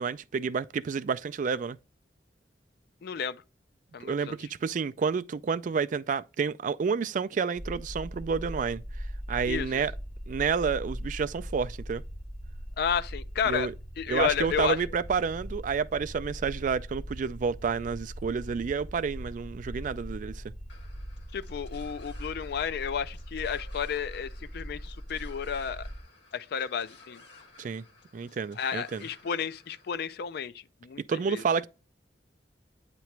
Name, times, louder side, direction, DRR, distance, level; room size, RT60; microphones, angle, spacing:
voice 1, 0.0-1.8 4.0-9.9 10.3-12.0 13.5-13.7 14.1-20.4 27.6-27.8 28.1-29.0 31.1-31.7, right 5 dB, 45° right, 0.3 m, -30 dB
voice 2, 3.0-3.4 3.9-4.4 9.5-9.9 12.8-13.7 14.0-14.8 21.3-25.9 26.3-27.2 28.6-31.4, left 7 dB, 60° left, 0.4 m, -32 dB
sound 1, 7.6-26.0, equal, 5° left, 1.0 m, -40 dB
sound 2, 20.7-29.9, left 3 dB, 80° left, 1.6 m, -56 dB
8.3 x 3.0 x 4.5 m
head